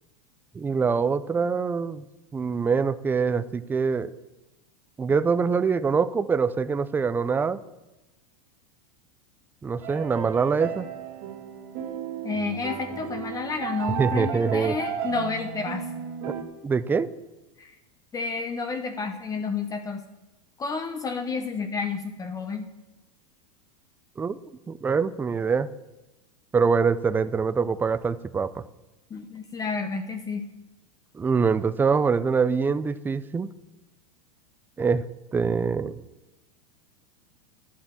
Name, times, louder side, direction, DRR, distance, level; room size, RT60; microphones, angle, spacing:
voice 1, 0.5-2.0 2.3-4.1 5.0-7.6 9.6-10.9 14.0-14.8 16.6-17.1 24.2-24.4 24.7-25.7 26.5-28.6 31.1-33.5 34.8-35.1 35.3-35.9, right 5 dB, 10° right, 15 dB, 0.4 m, -24 dB
sound 1, 9.8-16.4, right 8 dB, 55° right, 2.3 m, -34 dB
voice 2, 12.2-15.9 17.6-17.8 18.1-20.0 20.6-22.7 29.1-30.4, left 4 dB, 20° left, 6 dB, 0.9 m, -30 dB
12.0 x 8.5 x 7.3 m, 1.1 s
supercardioid pair, 135°, 19 cm